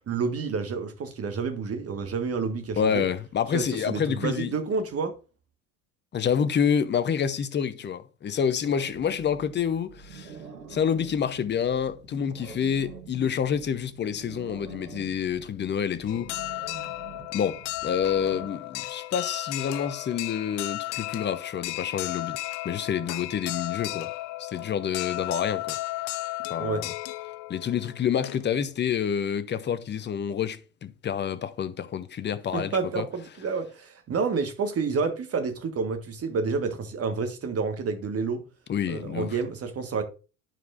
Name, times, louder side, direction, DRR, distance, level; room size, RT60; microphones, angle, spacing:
voice 1, 0.1-3.0 3.5-5.1 26.6-26.8 32.5-38.5 38.9-40.0, right 5 dB, 30° right, 1.5 m, -29 dB
voice 2, 2.8-4.5 6.1-10.4 10.7-16.6 17.3-22.4 22.6-24.1 24.4-25.8 26.5-26.9 27.5-33.1 38.7-39.4, left 8 dB, 25° left, 0.7 m, -28 dB
sound 1, 8.6-18.5, right 6 dB, 85° right, 1.1 m, -46 dB
sound 2, 16.1-28.7, left 18 dB, 55° left, 0.5 m, -34 dB
11.5 x 4.6 x 2.5 m
figure-of-eight pair, 65°, 44 cm